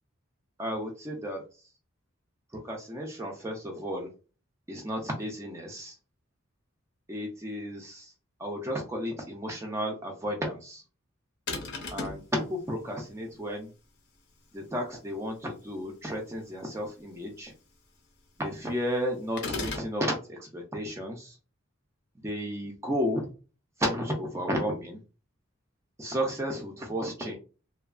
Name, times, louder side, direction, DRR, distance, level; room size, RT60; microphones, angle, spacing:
voice 1, 0.6-1.7 2.5-4.1 4.7-6.0 7.1-8.1 8.4-10.8 11.9-13.7 14.5-17.5 18.4-21.4 22.2-23.3 23.8-25.0 26.0-27.4, equal, 15° right, 1 dB, 0.4 m, -33 dB
sound 1, 11.5-12.3 19.4-19.9, left 3 dB, 60° left, 0.6 m, -34 dB
2.7 x 2.3 x 2.3 m, 0.35 s
head